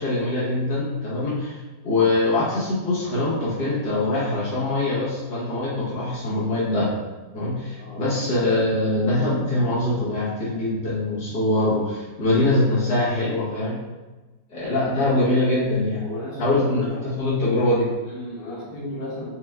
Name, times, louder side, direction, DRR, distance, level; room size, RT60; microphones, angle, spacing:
voice 1, 0.0-1.6 1.8-6.9 7.3-13.8 14.5-16.0 16.4-17.9, left 2 dB, 80° left, -9 dB, 1.8 m, -23 dB
voice 2, 7.8-8.3 14.8-15.3 15.9-17.1 18.0-19.3, left 1 dB, 65° left, -7 dB, 1.8 m, -34 dB
5.7 x 2.3 x 3.4 m, 1.2 s
omnidirectional pair, 1.7 m